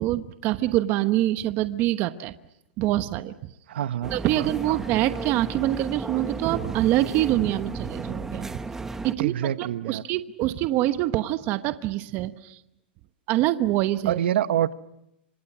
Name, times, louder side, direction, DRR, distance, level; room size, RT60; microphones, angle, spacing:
voice 1, 0.0-2.3 2.8-3.5 4.1-8.5 9.0-12.6 13.3-14.2, right 15 dB, 35° right, 11 dB, 1.0 m, -25 dB
voice 2, 3.7-4.8 9.2-10.0 14.0-14.7, right 11 dB, 70° right, 13 dB, 1.2 m, -27 dB
sound 1, 4.0-9.2, right 3 dB, 5° right, 1.0 m, -34 dB
29.5 x 26.5 x 6.2 m, 0.86 s
hypercardioid pair, 150°, 6 cm